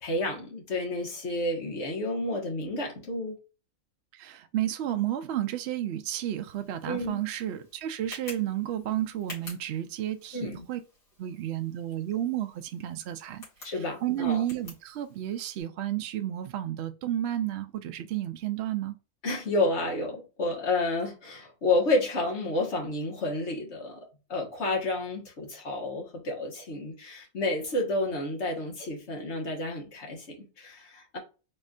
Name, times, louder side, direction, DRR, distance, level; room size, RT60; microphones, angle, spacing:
voice 1, 0.0-3.4 6.8-7.2 10.3-10.6 13.6-14.4 19.2-31.2, left 2 dB, 50° left, 1.5 m, -30 dB
voice 2, 4.1-10.8 11.2-19.0, right 12 dB, 70° right, 0.6 m, -32 dB
Tick, 6.4-15.6, left 2 dB, 70° left, 2.9 m, -50 dB
4.4 x 3.2 x 2.4 m
omnidirectional pair, 1.6 m